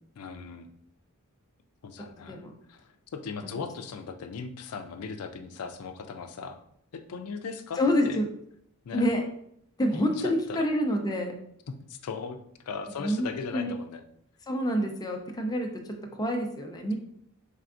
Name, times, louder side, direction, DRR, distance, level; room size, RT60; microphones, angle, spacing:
voice 1, 0.2-0.7 1.8-2.4 2.7-6.6 6.9-8.2 8.8-9.1 9.9-10.7 11.7-12.4 12.6-14.0, left 5 dB, 85° left, 7 dB, 0.4 m, -38 dB
voice 2, 7.8-8.3 8.9-9.2 9.8-11.3 13.0-13.3 13.5-13.7 14.5-15.7 16.2-17.0, equal, 20° left, 2 dB, 0.5 m, -27 dB
4.5 x 3.3 x 2.5 m, 0.70 s
head